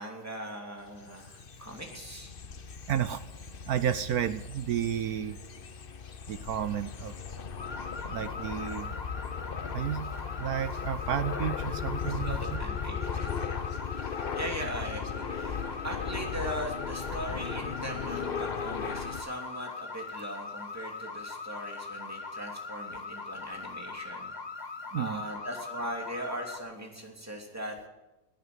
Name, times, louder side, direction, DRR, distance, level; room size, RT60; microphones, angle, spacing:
voice 1, 0.0-2.3 12.2-13.5 13.9-24.3 25.0-27.8, right 1 dB, 5° right, 1 dB, 2.7 m, -40 dB
sound 1, 0.9-19.2, left 6 dB, 75° left, 0.5 m, -37 dB
voice 2, 2.9-3.2 3.6-5.4 6.3-7.1 8.0-8.9 9.7-10.1 10.4-12.6 24.9-25.2, right 9 dB, 70° right, 13 dB, 0.9 m, -31 dB
sound 2, 7.6-26.6, left 4 dB, 35° left, 0.6 m, -41 dB
18.5 x 9.4 x 7.9 m, 0.99 s
omnidirectional pair, 2.2 m